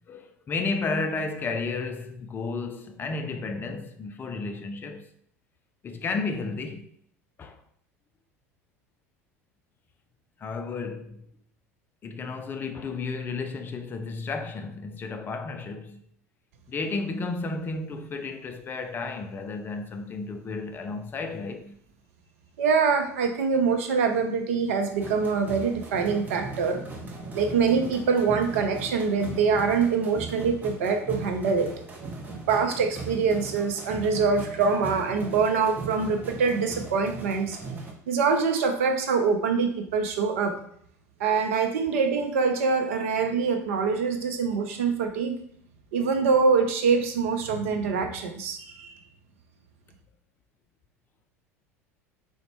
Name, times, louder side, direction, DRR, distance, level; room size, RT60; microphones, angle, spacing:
voice 1, 0.1-5.1 5.8-7.0 7.4-7.6 10.4-11.2 12.0-16.0 16.7-21.8, left 3 dB, 25° left, 0.3 m, -32 dB
voice 2, 22.6-26.8 27.3-31.7 32.5-37.6 38.1-40.6 41.2-45.4 45.9-48.9, right 5 dB, 60° right, 0.5 m, -24 dB
sound 1, 24.9-37.9, right 3 dB, 20° right, 0.6 m, -39 dB
3.9 x 2.1 x 3.1 m
figure-of-eight pair, 70°, 8 cm